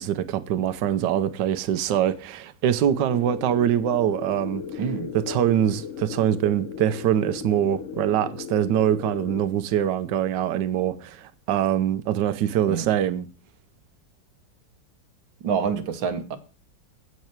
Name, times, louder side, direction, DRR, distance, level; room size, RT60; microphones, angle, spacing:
voice 1, 0.0-4.6 5.3-13.3, right 10 dB, 75° right, 1.4 m, -24 dB
sound 1, 2.9-9.4, left 8 dB, 70° left, 0.7 m, -36 dB
voice 2, 4.8-5.1 12.7-12.9 15.4-16.4, right 6 dB, 90° right, 1.8 m, -27 dB
8.5 x 8.0 x 4.5 m
omnidirectional pair, 2.0 m